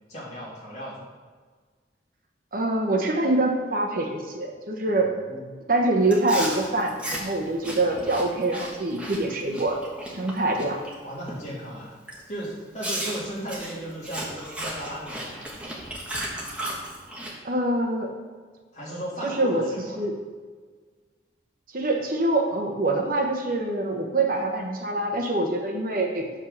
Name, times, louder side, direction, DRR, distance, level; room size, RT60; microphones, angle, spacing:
voice 1, 0.1-1.1 4.9-5.5 11.0-11.9 12.3-15.7 18.7-20.0, right 1 dB, 35° left, -7 dB, 2.8 m, -36 dB
voice 2, 2.5-5.1 5.7-9.8 10.1-10.8 17.4-18.1 19.2-19.7 20.0-20.1 21.7-26.3, right 2 dB, 50° right, 2 dB, 0.9 m, -25 dB
Chewing mastication, 6.1-10.9 11.3-11.6 12.1-12.2 12.8-17.3, right 1 dB, 5° right, 1.3 m, -35 dB
7.1 x 5.3 x 6.4 m, 1.5 s
head